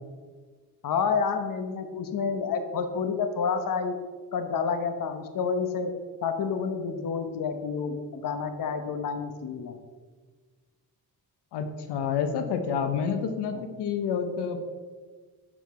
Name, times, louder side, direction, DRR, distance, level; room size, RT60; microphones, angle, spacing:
voice 1, 0.8-4.0 4.3-5.9 6.2-9.8 13.5-13.7, left 5 dB, 55° left, 7 dB, 1.0 m, -29 dB
voice 2, 11.5-14.6, left 6 dB, 90° left, 7 dB, 1.0 m, -29 dB
11.0 x 5.7 x 4.3 m, 1.4 s
cardioid pair, 125°, 39 cm